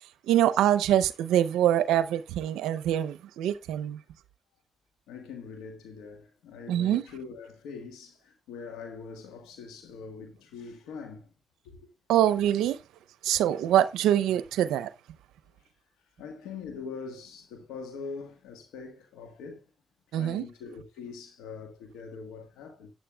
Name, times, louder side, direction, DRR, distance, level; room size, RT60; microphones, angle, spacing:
voice 1, 0.3-4.0 6.7-7.0 12.1-12.8 13.2-14.9 20.1-20.5, right 11 dB, 90° right, 0.5 m, -24 dB
voice 2, 5.1-11.3 11.6-11.9 12.4-12.5 15.5-19.7 20.2-22.9, left 5 dB, 90° left, 1.4 m, -43 dB
13.5 x 9.3 x 2.2 m
supercardioid pair, 50°, 0 cm